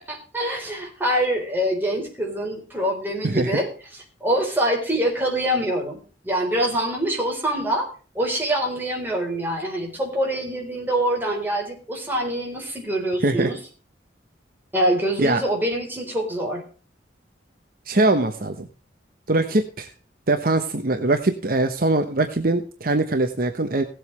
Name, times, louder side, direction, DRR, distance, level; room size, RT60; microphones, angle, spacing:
voice 1, 0.1-3.7 4.2-7.9 8.1-13.6 14.7-16.6, right 1 dB, 10° right, -1 dB, 4.1 m, -25 dB
voice 2, 3.2-3.6 13.2-13.5 15.2-15.4 17.9-18.7 19.3-19.9 20.3-23.8, right 2 dB, 55° right, 6 dB, 1.1 m, -22 dB
17.5 x 8.0 x 3.3 m, 0.38 s
head